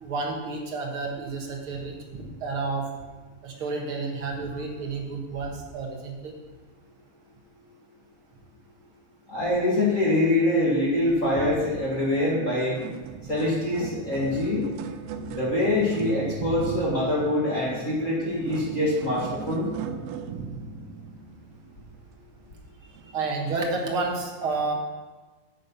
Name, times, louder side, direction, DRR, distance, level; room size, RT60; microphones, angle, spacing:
voice 1, 0.0-2.9 3.4-6.3 16.4-16.8 23.1-24.7, right 3 dB, 60° right, 0 dB, 1.4 m, -30 dB
voice 2, 9.3-12.8 13.3-14.7 15.3-19.7, left 1 dB, 30° left, -5 dB, 1.5 m, -24 dB
sound 1, 12.2-12.4 12.6-22.3 23.0-23.1 23.9-24.0, right 6 dB, 90° right, 2.5 m, -38 dB
9.3 x 8.8 x 5.6 m, 1.3 s
omnidirectional pair, 4.3 m